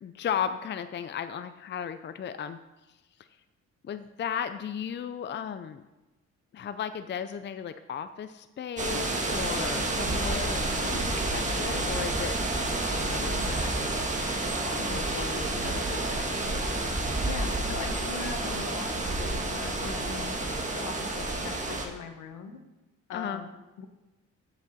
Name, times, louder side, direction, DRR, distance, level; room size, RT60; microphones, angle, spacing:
voice 1, 0.0-2.6 3.8-5.8 6.5-12.6 12.9-13.7 14.6-16.7 23.1-23.4, left 8 dB, 40° left, 11 dB, 0.5 m, -36 dB
sound 1, 8.8-21.9, right 2 dB, 25° right, 1.6 m, -29 dB
voice 2, 10.8-11.1 13.3-13.5 14.8-15.0 17.2-20.4 20.7-22.6 23.1-23.5 23.8-23.9, left 5 dB, 75° left, 7 dB, 1.2 m, -40 dB
14.0 x 6.1 x 4.2 m, 1.0 s
cardioid pair, 90°, 30 cm